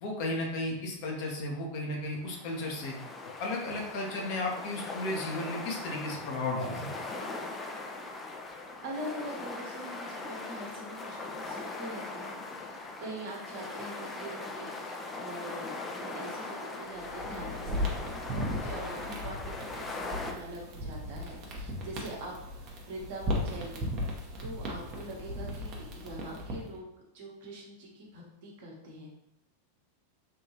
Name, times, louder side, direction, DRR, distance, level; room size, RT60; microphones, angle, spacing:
voice 1, 0.0-3.0 3.4-6.9, left 2 dB, 45° left, -1 dB, 0.9 m, -34 dB
sound 1, 2.2-20.3, left 3 dB, 15° left, 0.4 m, -40 dB
voice 2, 8.8-23.9 24.4-26.8 27.1-29.1, right 1 dB, 55° right, -3 dB, 1.1 m, -43 dB
sound 2, 17.0-26.8, left 1 dB, 35° right, 0.8 m, -37 dB
3.6 x 2.7 x 2.9 m, 0.82 s
figure-of-eight pair, 90°, 0 cm